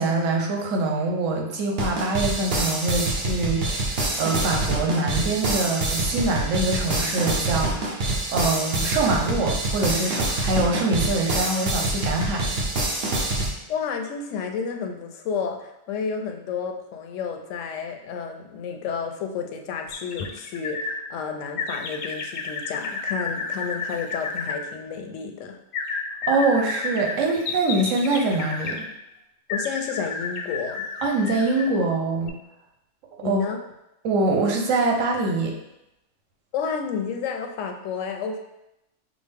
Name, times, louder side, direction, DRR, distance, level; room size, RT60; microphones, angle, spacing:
voice 1, 0.0-8.0 8.3-12.5 26.3-28.9 31.0-32.3 33.2-33.4 34.0-35.5, right 2 dB, 85° right, 1 dB, 1.1 m, -24 dB
sound 1, 1.8-13.5, right 2 dB, 55° right, 0.9 m, -26 dB
voice 2, 13.7-25.6 29.5-30.9 33.2-33.6 36.5-38.4, left 6 dB, 85° left, 4 dB, 0.9 m, -31 dB
sound 2, 19.9-21.0 21.6-24.6 25.7-28.8 29.5-31.8 32.2-32.3, left 4 dB, 60° left, 0.6 m, -31 dB
6.0 x 2.0 x 3.4 m, 0.88 s
omnidirectional pair, 1.3 m